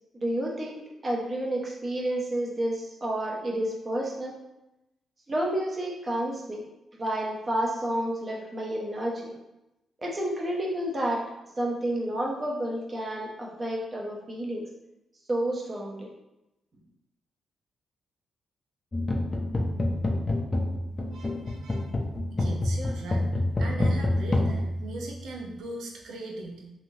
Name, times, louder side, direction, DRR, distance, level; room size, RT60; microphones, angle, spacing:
voice 1, 0.1-4.3 5.3-6.6 6.9-9.3 10.0-11.2 11.6-14.7 15.3-16.1, right 1 dB, 30° right, -2 dB, 0.7 m, -30 dB
sound 1, 18.9-25.6, left 1 dB, 25° left, 0.4 m, -28 dB
voice 2, 21.1-21.9 22.3-23.3 23.6-26.7, right 2 dB, 85° right, -1 dB, 0.6 m, -39 dB
3.2 x 2.6 x 2.7 m, 0.93 s
cardioid pair, 115°, 0 cm